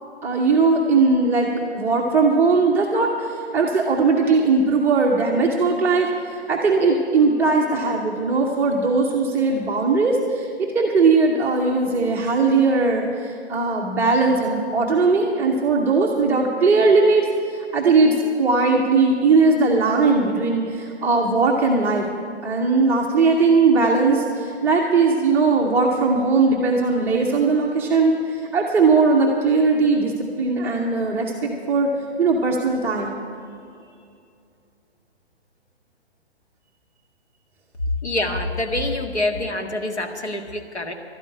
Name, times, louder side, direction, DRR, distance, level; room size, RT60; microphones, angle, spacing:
voice 1, 0.2-22.1 22.4-30.1 30.4-31.9 32.2-33.2, right 3 dB, 5° right, -3 dB, 0.6 m, -19 dB
voice 2, 38.0-40.9, left 1 dB, 75° left, 3 dB, 1.8 m, -26 dB
12.5 x 8.9 x 9.5 m, 2.5 s
figure-of-eight pair, 135°, 33 cm